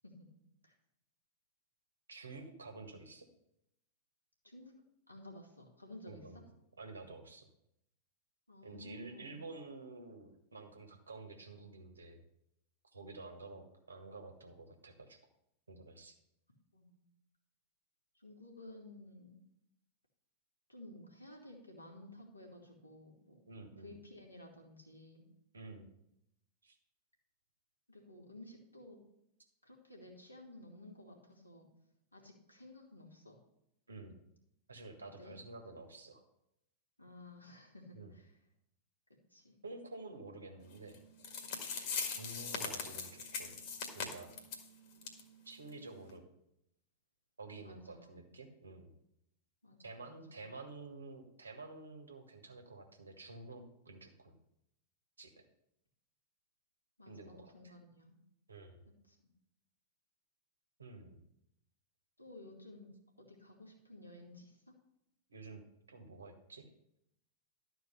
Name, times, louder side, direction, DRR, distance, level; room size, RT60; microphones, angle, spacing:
voice 1, 2.1-3.3 6.1-6.4 6.8-7.5 8.6-12.2 12.9-15.2 15.7-16.1 23.4-23.9 25.5-25.9 26.6-26.8 33.9-34.2 34.7-36.2 37.9-38.1 39.6-41.0 42.2-43.6 43.9-44.3 45.4-46.2 47.4-48.9 49.8-54.3 55.2-55.3 57.1-57.7 58.5-58.8 60.8-61.2 65.3-66.7, right 3 dB, 75° right, 4 dB, 1.6 m, -50 dB
voice 2, 5.1-6.4 8.5-9.4 16.7-17.0 18.1-19.4 20.7-23.4 23.8-25.3 27.9-29.0 29.6-31.7 32.1-33.4 35.2-35.3 37.0-38.3 39.3-39.5 47.6-48.3 49.6-50.4 57.0-58.2 59.1-59.2 62.2-62.9 63.2-64.7, left 1 dB, 85° left, -1 dB, 2.2 m, -54 dB
sound 1, 40.9-41.0 41.2-44.7 45.0-45.2 45.5-45.6 46.1-46.2, left 5 dB, 50° left, 1.9 m, -40 dB
12.0 x 4.6 x 6.7 m, 0.80 s
figure-of-eight pair, 90°, 0 cm